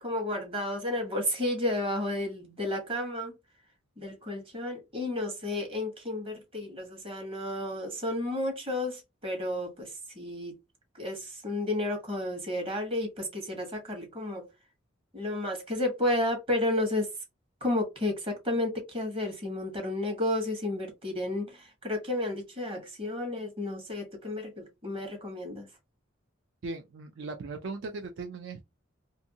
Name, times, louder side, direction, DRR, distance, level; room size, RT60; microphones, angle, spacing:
voice 1, 0.0-3.4 4.0-10.6 10.9-14.5 15.1-17.1 17.6-25.8, left 1 dB, 25° right, 1.0 m, -32 dB
voice 2, 26.6-28.6, right 3 dB, 65° right, 0.4 m, -38 dB
2.6 x 2.5 x 2.7 m
head